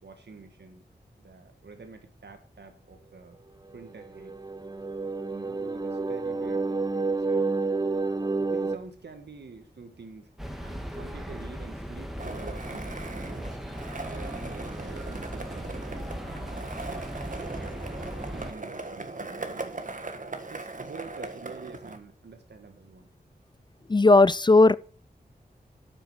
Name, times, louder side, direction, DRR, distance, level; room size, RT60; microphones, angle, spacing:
voice 1, 0.0-0.8 1.2-3.4 3.7-4.4 5.3-7.5 8.4-10.3 10.6-13.5 14.1-19.8 20.5-23.1, right 4 dB, 85° right, 1.7 m, -47 dB
sound 1, 3.8-8.8, right 3 dB, 25° right, 0.8 m, -29 dB
sound 2, 10.4-18.5, equal, ahead, 2.1 m, -38 dB
Skateboard, 12.2-22.0, right 3 dB, 50° right, 1.6 m, -39 dB
voice 2, 23.9-24.7, left 3 dB, 25° left, 0.4 m, -16 dB
9.0 x 8.0 x 6.4 m
cardioid pair, 40°, 17 cm